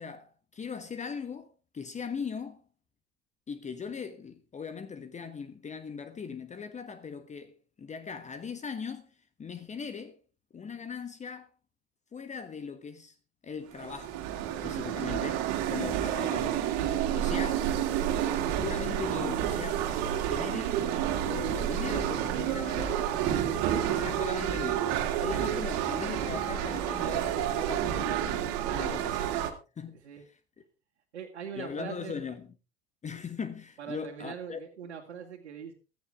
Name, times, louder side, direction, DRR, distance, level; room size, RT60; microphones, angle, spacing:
voice 1, 0.0-2.6 3.5-10.2 10.5-11.5 12.1-13.2 13.4-16.8 17.1-17.7 18.6-20.8 21.2-23.4 23.7-29.2 29.8-30.0 30.2-30.4 31.5-32.5 33.0-34.6, left 6 dB, 20° left, 1.3 m, -39 dB
sound 1, 13.7-29.5, right 10 dB, 50° right, 2.6 m, -30 dB
voice 2, 28.6-29.3 29.9-30.3 31.1-32.2 33.8-35.7, right 8 dB, 80° right, 2.4 m, -42 dB
16.0 x 14.0 x 3.5 m
figure-of-eight pair, 80°, 33 cm